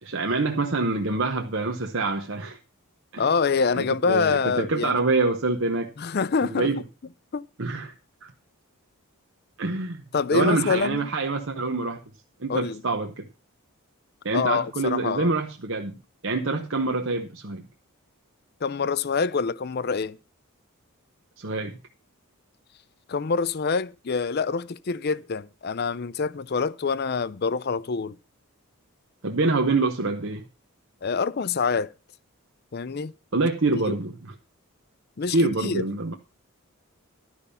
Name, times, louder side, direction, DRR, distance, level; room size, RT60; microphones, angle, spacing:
voice 1, 0.0-2.6 3.1-3.3 3.8-5.9 6.4-6.8 7.6-7.9 8.2-8.3 9.6-10.0 10.3-12.0 12.4-13.3 14.2-16.0 16.2-17.6 21.4-21.8 29.2-30.5 33.3-34.3 35.3-36.2, right 3 dB, 55° right, 0.9 m, -26 dB
voice 2, 3.2-5.0 6.0-6.7 7.3-7.5 10.1-11.1 12.5-12.8 14.3-15.3 18.6-20.2 23.1-28.2 31.0-31.9 32.7-33.1 33.9-34.0 35.2-35.8, left 5 dB, 45° left, 0.5 m, -26 dB
12.0 x 5.5 x 6.8 m
head